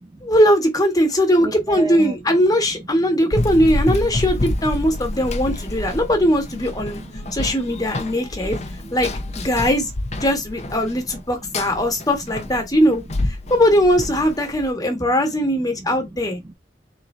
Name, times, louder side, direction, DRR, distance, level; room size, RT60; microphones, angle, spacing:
voice 1, 0.2-7.0 7.3-8.6 8.9-9.1 9.3-9.9 10.2-13.0 13.5-16.4, equal, 20° left, 1.5 m, -19 dB
voice 2, 1.4-2.1 3.2-3.3 4.8-4.9 5.1-5.7 6.0-6.1 6.9-7.4 8.1-8.2 8.6-8.9 11.5-11.6 14.8-14.9 15.8-15.9 16.4-16.5, right 2 dB, 20° right, 0.4 m, -35 dB
Run, 3.3-14.7, left 1 dB, 40° left, 0.7 m, -28 dB
3.8 x 2.8 x 4.3 m
head